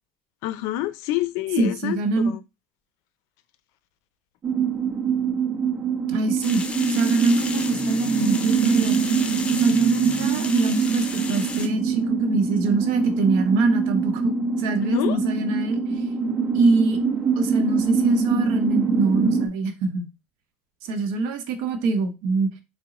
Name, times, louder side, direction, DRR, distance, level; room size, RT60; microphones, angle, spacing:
voice 1, 0.4-2.4 14.8-15.2, left 15 dB, 75° left, 0.4 m, -27 dB
voice 2, 1.6-2.4 6.1-6.6 6.9-9.0 9.5-16.0 16.5-17.0 17.4-20.1 20.8-22.5, right 3 dB, 80° right, 0.7 m, -24 dB
sound 1, 4.4-19.5, right 5 dB, 45° right, 0.7 m, -24 dB
sound 2, 6.4-11.7, left 3 dB, 20° left, 0.6 m, -33 dB
3.8 x 2.0 x 3.7 m
supercardioid pair, 90°, 5 cm